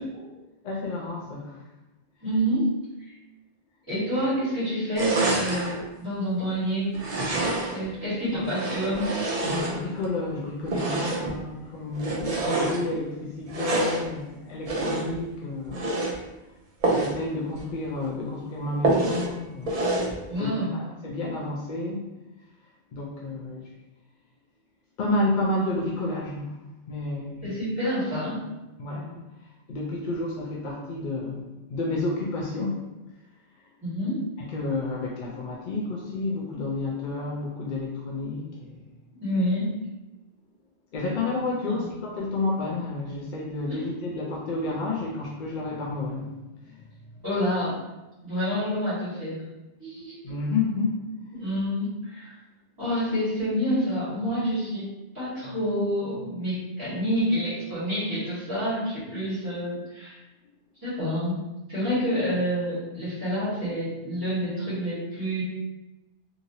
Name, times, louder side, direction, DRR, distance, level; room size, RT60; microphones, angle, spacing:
voice 1, 0.6-1.6 8.3-8.4 9.4-15.9 16.9-19.7 20.4-22.1 22.9-23.7 25.0-26.6 26.9-27.5 28.8-29.2 29.7-32.8 34.4-38.8 40.9-46.4 46.7-46.8 50.2-51.0, left 2 dB, 60° left, -4 dB, 0.6 m, -30 dB
voice 2, 2.2-2.7 3.9-6.9 7.7-9.1 20.3-20.7 27.4-28.4 33.8-34.2 39.2-39.7 41.6-41.9 43.7-43.8 47.2-47.8 48.2-49.4 49.8-50.1 51.3-52.3 52.8-60.2 60.8-61.4 61.7-65.4, equal, 20° right, -12 dB, 1.4 m, -28 dB
sound 1, 4.9-5.8 6.9-7.9 8.4-10.1 10.7-11.4 11.9-12.8 13.5-14.1 14.6-15.2 15.7-16.2 16.8-17.2 17.6-17.7 18.0-18.1 18.8-19.3 19.7-20.2, right 2 dB, 50° right, 0.5 m, -27 dB
2.9 x 2.6 x 2.7 m, 1.0 s
omnidirectional pair, 1.1 m